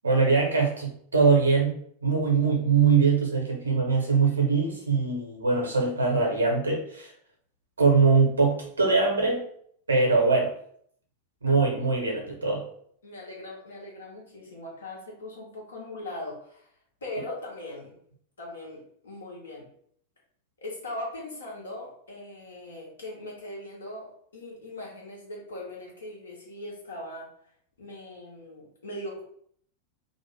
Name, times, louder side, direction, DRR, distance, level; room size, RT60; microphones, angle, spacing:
voice 1, 0.0-1.7 2.0-7.1 7.8-9.4 9.9-10.5 11.4-12.7, right 4 dB, 75° right, 0 dB, 0.8 m, -22 dB
voice 2, 13.0-16.7 17.0-17.9 18.4-19.7 20.6-27.3 27.8-29.2, left 1 dB, 70° left, -3 dB, 1.1 m, -40 dB
2.6 x 2.1 x 3.2 m, 0.63 s
figure-of-eight pair, 90°, 0 cm